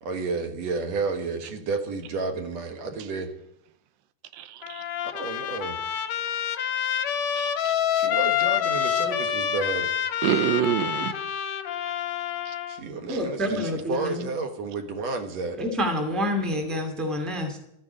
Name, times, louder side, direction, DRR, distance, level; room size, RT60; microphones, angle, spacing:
voice 1, 0.0-3.3 5.1-5.8 7.9-9.9 12.7-15.6, right 3 dB, 60° right, 2.3 m, -31 dB
voice 2, 4.3-4.8 7.4-7.7 10.2-11.2 12.5-12.6 13.1-13.2, right 10 dB, 85° right, 2.6 m, -27 dB
Trumpet, 4.6-12.8, left 9 dB, 70° left, 1.7 m, -27 dB
voice 3, 13.1-14.2 15.6-17.6, left 1 dB, ahead, 1.6 m, -27 dB
13.5 x 9.4 x 9.9 m
omnidirectional pair, 4.1 m